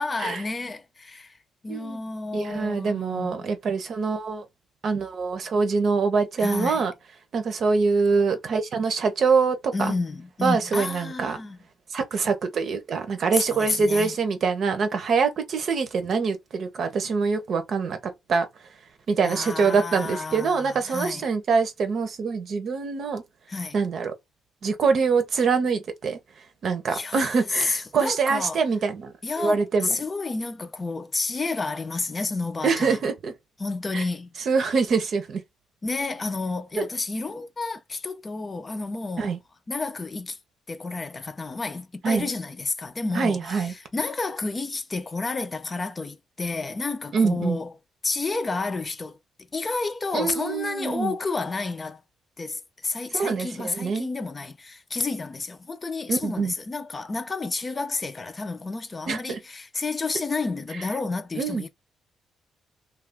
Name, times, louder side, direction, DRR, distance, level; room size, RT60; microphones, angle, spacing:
voice 1, 0.0-1.4 1.6-3.4 6.4-6.9 9.7-11.6 13.3-14.1 19.2-21.2 23.5-23.8 26.9-28.6 29.2-33.0 33.6-34.3 35.8-39.3 39.7-40.4 40.7-47.7 48.0-49.2 49.5-52.0 52.4-61.7, left 3 dB, 30° left, 0.5 m, -30 dB
voice 2, 1.7-2.0 2.3-4.4 4.8-6.9 7.3-9.9 10.4-11.4 11.9-18.5 19.1-23.2 23.7-24.1 24.6-26.2 26.6-30.0 32.6-33.3 33.9-34.0 34.5-35.4 36.8-36.9 39.2-39.4 42.0-42.3 43.1-43.7 47.1-47.6 50.1-51.1 53.1-54.1 56.1-56.5 59.1-59.4 61.4-61.6, right 5 dB, 55° right, 0.7 m, -24 dB
2.5 x 2.3 x 3.3 m
cardioid pair, 90°, 0 cm